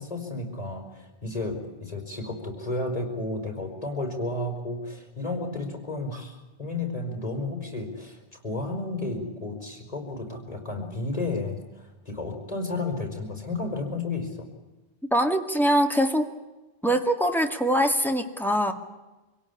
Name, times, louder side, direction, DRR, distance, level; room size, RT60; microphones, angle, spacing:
voice 1, 0.0-8.2 8.4-14.5, left 2 dB, 35° left, 3 dB, 5.2 m, -32 dB
voice 2, 15.1-16.3 16.8-18.7, equal, ahead, 5 dB, 2.0 m, -23 dB
26.0 x 17.0 x 9.9 m, 1.1 s
omnidirectional pair, 1.1 m